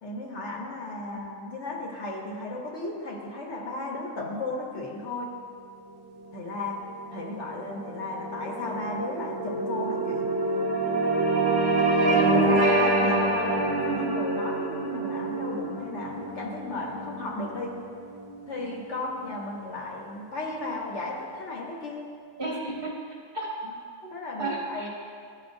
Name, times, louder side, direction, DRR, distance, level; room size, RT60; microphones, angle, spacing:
voice 1, 0.0-5.3 6.3-6.8 7.1-10.3 12.0-17.7 18.5-22.0 24.1-24.9, left 2 dB, 55° left, -2 dB, 1.1 m, -35 dB
sound 1, 6.4-19.0, right 2 dB, 20° right, 0.6 m, -27 dB
voice 2, 22.4-23.5 24.0-24.1 24.4-24.9, right 2 dB, 45° right, -4 dB, 1.1 m, -34 dB
12.0 x 4.5 x 2.6 m, 2.2 s
omnidirectional pair, 1.5 m